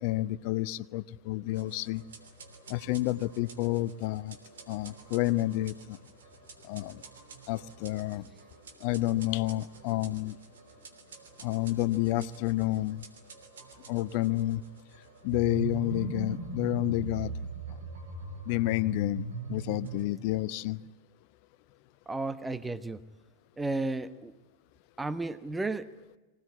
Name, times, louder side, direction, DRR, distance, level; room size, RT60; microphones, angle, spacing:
voice 1, 0.0-2.0 2.7-4.4 4.7-6.0 6.6-7.0 7.5-8.3 8.8-10.4 11.4-13.0 13.9-14.6 15.2-17.3 18.5-20.8, left 16 dB, 45° left, 15 dB, 0.8 m, -30 dB
sound 1, 1.5-20.0, right 3 dB, 65° right, 3.2 m, -42 dB
voice 2, 22.1-23.0 23.6-24.3 25.0-25.9, right 2 dB, 10° right, 14 dB, 1.1 m, -33 dB
24.5 x 18.0 x 9.8 m, 1.1 s
figure-of-eight pair, 90°, 0 cm